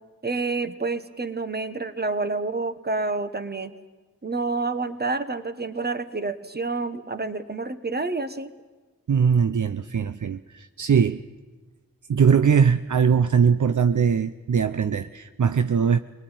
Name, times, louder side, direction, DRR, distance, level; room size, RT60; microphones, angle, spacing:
voice 1, 0.2-3.7 4.2-8.5, right 3 dB, 30° right, 1.5 m, -28 dB
voice 2, 9.1-11.2 12.1-16.0, right 6 dB, 60° right, 0.8 m, -21 dB
23.5 x 19.5 x 9.2 m
wide cardioid pair, 70°, 34 cm